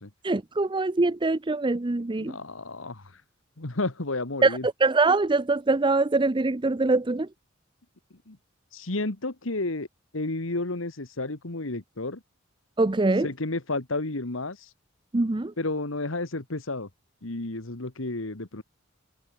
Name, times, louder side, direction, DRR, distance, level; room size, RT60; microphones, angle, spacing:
voice 1, 0.2-2.4 4.4-7.3 12.8-13.3 15.1-15.5, right 3 dB, 25° right, 0.6 m, -23 dB
voice 2, 2.2-3.2 3.6-4.7 8.3-8.4 8.7-9.9 10.1-12.2 13.2-14.7 15.6-16.9 17.2-18.6, left 2 dB, 75° left, 1.9 m, -31 dB
head